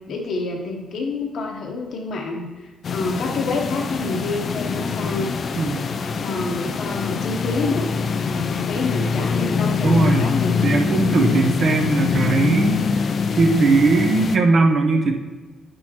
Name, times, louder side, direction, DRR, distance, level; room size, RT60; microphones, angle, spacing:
voice 1, 0.0-2.5 2.9-5.3 6.1-7.9 8.2-10.7 11.2-11.5, left 3 dB, 60° left, 1 dB, 1.0 m, -28 dB
sound 1, 2.8-14.4, left 5 dB, 45° left, 0.3 m, -24 dB
voice 2, 9.8-10.3 10.6-13.0 13.3-15.1, right 3 dB, 50° right, 3 dB, 0.7 m, -19 dB
8.5 x 6.2 x 3.0 m, 1.3 s
cardioid pair, 150°, 0 cm